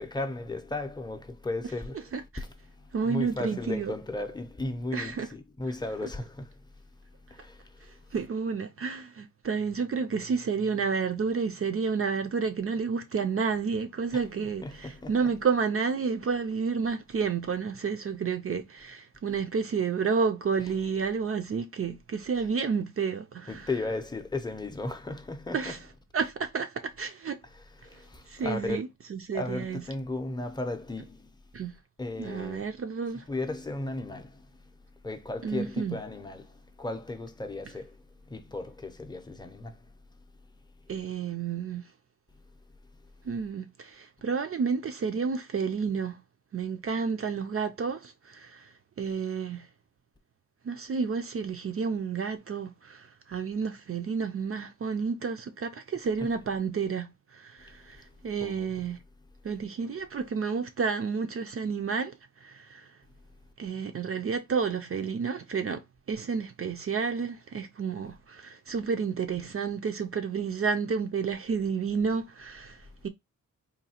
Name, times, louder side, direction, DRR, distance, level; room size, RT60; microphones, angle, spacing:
voice 1, 0.0-2.1 2.4-6.6 7.1-8.0 14.1-14.2 14.6-15.1 23.5-25.8 27.8-28.8 29.3-31.3 32.0-32.7 33.3-40.5 42.3-42.4 43.0-43.1 56.2-56.3 57.6-58.7 72.8-72.9, left 2 dB, 15° left, 0.6 m, -36 dB
voice 2, 2.1-2.4 2.9-3.9 4.9-5.3 8.1-23.7 25.5-25.8 26.1-27.4 28.3-29.8 31.5-31.8 32.2-33.3 35.4-36.0 40.9-41.8 43.2-46.2 46.5-48.7 49.0-49.7 50.6-59.0 59.4-62.9 63.6-73.1, right 5 dB, 45° right, 0.4 m, -30 dB
3.9 x 2.7 x 2.8 m
wide cardioid pair, 120°, 32 cm